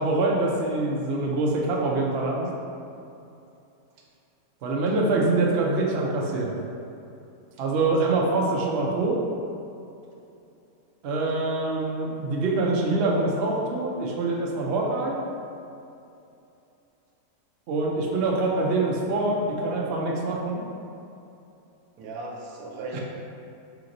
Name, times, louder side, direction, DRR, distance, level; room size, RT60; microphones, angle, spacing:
voice 1, 0.0-2.5 4.6-6.6 7.6-9.2 11.0-15.2 17.7-20.6, right 2 dB, 60° right, -2 dB, 0.7 m, -25 dB
voice 2, 22.0-23.0, right 3 dB, 80° right, -1 dB, 1.2 m, -36 dB
5.8 x 2.9 x 2.5 m, 2.7 s
omnidirectional pair, 1.6 m